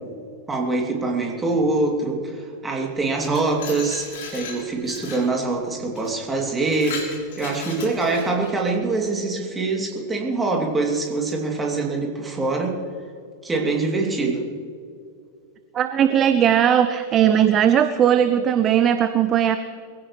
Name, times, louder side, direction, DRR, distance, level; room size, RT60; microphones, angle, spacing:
voice 1, 0.5-12.8 13.4-14.5, right 3 dB, 15° right, 0 dB, 2.8 m, -24 dB
Glass, 3.0-5.3 6.0-6.1 6.5-8.5, left 5 dB, 55° left, 3.4 m, -37 dB
voice 2, 15.7-19.6, right 9 dB, 30° right, 10 dB, 0.7 m, -18 dB
23.5 x 16.5 x 3.2 m, 2.3 s
figure-of-eight pair, 90°, 0 cm